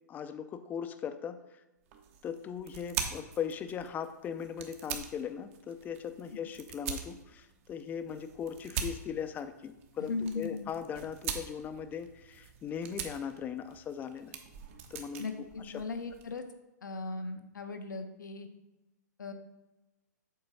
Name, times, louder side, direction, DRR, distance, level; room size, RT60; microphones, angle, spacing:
voice 1, 0.1-1.4 2.2-14.4 14.9-15.7, left 7 dB, 20° left, 10 dB, 0.5 m, -39 dB
sound 1, 1.9-16.4, right 7 dB, 45° right, 1.0 m, -43 dB
voice 2, 10.0-10.6 15.2-16.4 16.8-18.5 19.2-19.3, left 3 dB, 90° left, 7 dB, 1.0 m, -38 dB
7.9 x 3.9 x 5.4 m, 1.0 s
hypercardioid pair, 130°, 10 cm